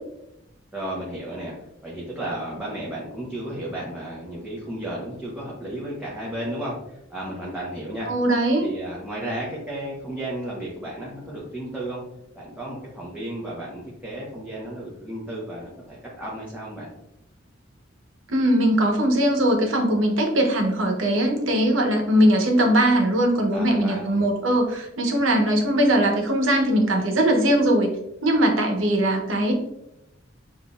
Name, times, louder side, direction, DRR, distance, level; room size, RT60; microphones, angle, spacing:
voice 1, 0.7-1.5 1.8-8.1 8.6-12.0 12.3-16.9 23.5-24.2, right 1 dB, 5° right, -6 dB, 0.9 m, -33 dB
voice 2, 8.1-8.6 18.3-27.9 28.2-29.5, right 1 dB, 85° right, 2 dB, 1.0 m, -20 dB
7.2 x 2.6 x 2.4 m, 0.84 s
head